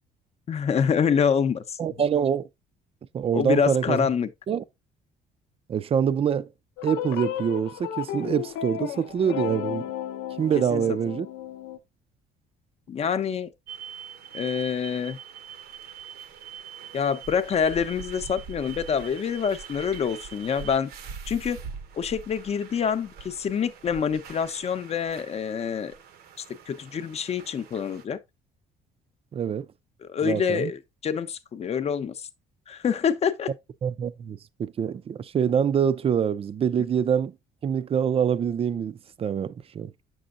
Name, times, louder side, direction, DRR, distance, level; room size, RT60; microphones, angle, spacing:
voice 1, 0.5-1.8 3.3-4.3 10.7-10.8 12.9-13.5 14.3-15.2 16.9-20.9 21.3-21.6 21.9-25.9 26.4-28.2 30.0-32.3 32.7-33.5, left 7 dB, 40° left, 0.7 m, -26 dB
voice 2, 1.8-2.5 3.1-4.1 4.5-4.6 5.7-6.5 6.8-9.9 10.4-11.3 29.3-29.7 30.2-30.7 33.8-37.3 37.6-39.9, right 8 dB, 35° right, 0.4 m, -25 dB
sound 1, 6.8-11.8, left 11 dB, 85° left, 0.6 m, -33 dB
sound 2, 13.7-28.0, right 6 dB, 65° right, 0.8 m, -43 dB
7.8 x 6.2 x 2.5 m
cardioid pair, 110°, 17 cm